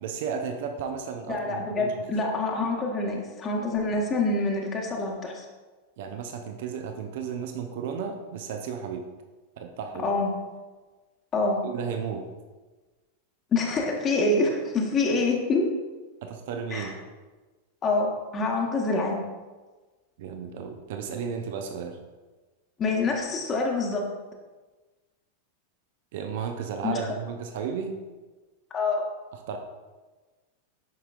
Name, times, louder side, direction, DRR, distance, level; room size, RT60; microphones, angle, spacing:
voice 1, 0.0-1.9 6.0-9.1 9.6-10.1 11.6-12.3 16.2-16.9 20.2-22.0 26.1-27.9 29.3-29.6, right 6 dB, 55° right, 6 dB, 0.6 m, -33 dB
voice 2, 1.3-5.5 10.0-10.3 11.3-11.6 13.5-15.7 16.7-16.9 17.8-19.2 22.8-24.0 26.8-27.1 28.7-29.0, left 3 dB, 25° left, -1 dB, 1.2 m, -26 dB
9.5 x 5.6 x 2.5 m, 1.3 s
figure-of-eight pair, 90°, 0 cm